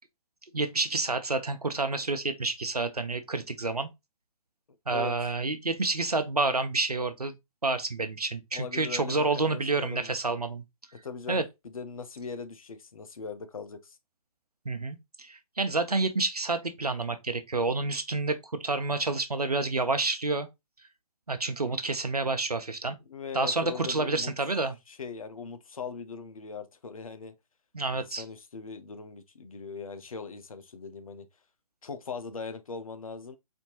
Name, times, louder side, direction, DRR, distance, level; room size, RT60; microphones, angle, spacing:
voice 1, 0.5-3.9 4.9-7.3 7.6-10.6 11.3-11.4 14.6-18.4 18.6-20.5 21.3-23.0 23.3-24.7 27.7-28.2, right 3 dB, 85° right, 0.8 m, -29 dB
voice 2, 8.5-10.1 10.9-14.0 23.1-24.3 24.9-27.3 27.9-31.3 31.8-33.4, left 5 dB, 65° left, 0.7 m, -40 dB
4.4 x 2.7 x 2.9 m
figure-of-eight pair, 130°, 19 cm